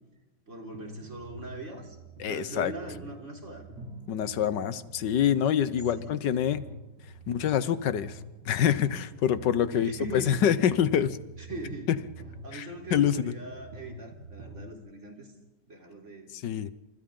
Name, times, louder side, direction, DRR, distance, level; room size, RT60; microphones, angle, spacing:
voice 1, 0.5-3.6 6.0-6.2 9.7-10.4 11.4-11.9 12.4-15.3 15.7-16.3, right 2 dB, 40° right, 1 dB, 4.0 m, -40 dB
sound 1, 0.7-14.7, right 1 dB, 85° right, 4.2 m, -46 dB
voice 2, 2.2-2.7 4.1-6.7 7.3-8.2 8.4-11.2 11.9-12.0 12.5-13.3 16.3-16.7, left 9 dB, 80° left, 14 dB, 1.6 m, -26 dB
30.0 x 27.0 x 3.8 m, 1.1 s
omnidirectional pair, 1.8 m